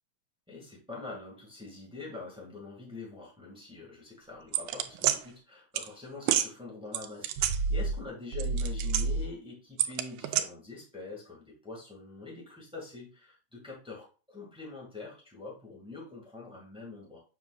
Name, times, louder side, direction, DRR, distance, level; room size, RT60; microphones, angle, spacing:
voice 1, 0.5-17.2, left 3 dB, ahead, -2 dB, 1.3 m, -45 dB
sound 1, 4.5-5.2 5.8-5.9 6.2-6.5 6.9-8.0 8.3-9.3 9.8-10.4, right 7 dB, 85° right, 2.0 m, -28 dB
7.4 x 5.9 x 2.4 m, 0.34 s
omnidirectional pair, 3.5 m